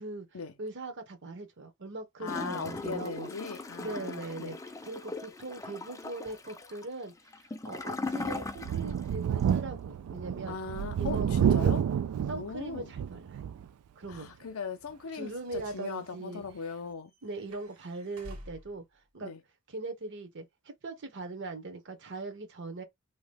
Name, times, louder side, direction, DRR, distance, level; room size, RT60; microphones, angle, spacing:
voice 1, 0.6-3.3 3.8-4.6 4.8-10.6 11.0-11.8 12.3-13.5 14.0-14.3 15.1-16.4 17.2-18.8 19.1-19.3 19.7-22.8, right 2 dB, 55° right, 0.9 m, -40 dB
voice 2, 2.2-4.6 10.5-11.8 12.3-12.9 14.1-17.1 19.2-19.4, left 5 dB, 65° left, 0.6 m, -39 dB
Gurgling / Toilet flush, 2.2-9.1 9.4-9.5, left 3 dB, 15° left, 0.3 m, -39 dB
Thunder, 8.6-13.7 14.1-14.2 15.6-15.7, right 8 dB, 90° right, 0.3 m, -29 dB
sound 1, 15.1-18.8, equal, 70° right, 1.5 m, -51 dB
2.8 x 2.2 x 3.3 m
head